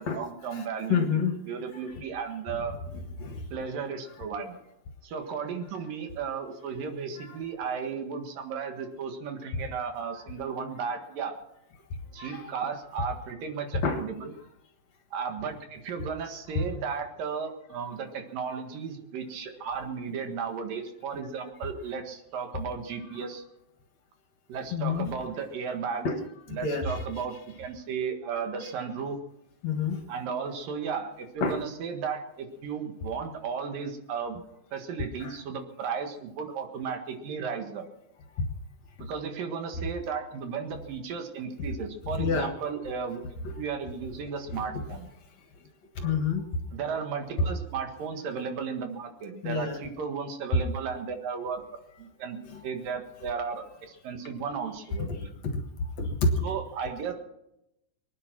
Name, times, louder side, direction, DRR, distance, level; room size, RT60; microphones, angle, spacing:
voice 1, 0.0-2.7 3.5-4.5 5.0-11.3 12.1-14.3 15.1-23.4 24.5-26.1 26.5-29.2 30.1-34.4 34.7-37.8 39.0-43.2 43.6-45.1 46.7-51.6 52.0-55.3 56.4-57.1, right 6 dB, 80° right, 5 dB, 3.4 m, -34 dB
voice 2, 0.5-1.4 3.2-3.4 7.3-7.4 12.2-12.4 13.8-14.0 23.1-23.2 24.7-25.1 26.0-26.2 26.6-27.0 29.6-30.0 31.4-31.6 35.2-35.4 42.2-42.5 44.5-44.6 46.0-46.5 47.4-47.5 49.4-49.8 52.5-52.6 55.0-55.1 55.4-55.5 56.0-56.3, left 4 dB, 55° left, 5 dB, 2.5 m, -28 dB
24.0 x 10.0 x 6.0 m, 0.84 s
omnidirectional pair, 3.9 m